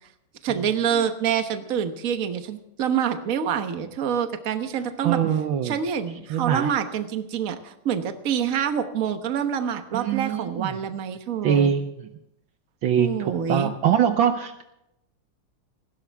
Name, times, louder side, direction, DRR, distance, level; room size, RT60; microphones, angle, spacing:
voice 1, 0.4-5.2 5.6-11.7 13.0-13.7, right 8 dB, 45° right, 8 dB, 1.3 m, -26 dB
voice 2, 5.0-5.8 6.3-6.7 9.9-10.8 11.4-12.1 12.8-14.6, right 8 dB, 70° right, 8 dB, 1.4 m, -23 dB
19.5 x 16.0 x 3.5 m, 0.83 s
omnidirectional pair, 2.4 m